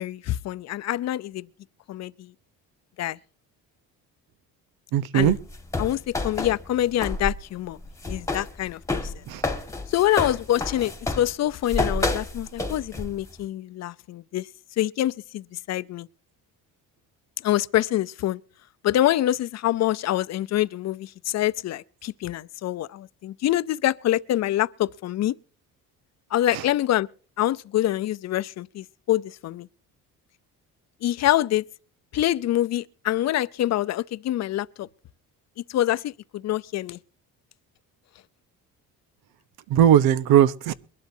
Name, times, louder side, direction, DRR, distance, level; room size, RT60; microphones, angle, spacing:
voice 1, 0.0-1.5 1.9-2.3 3.0-3.2 5.1-5.3 5.8-7.8 8.1-9.1 9.9-14.5 14.8-16.1 17.4-18.4 18.8-25.3 26.3-27.1 27.4-29.7 31.0-31.6 32.1-34.9 35.7-37.0, left 13 dB, 50° left, 0.6 m, -25 dB
voice 2, 4.9-5.4 9.3-9.4 26.5-26.7 39.7-40.7, right 10 dB, 90° right, 1.1 m, -19 dB
sound 1, 5.2-7.3 7.6-13.3, left 2 dB, 10° left, 1.7 m, -29 dB
22.5 x 12.5 x 2.8 m
cardioid pair, 145°, 36 cm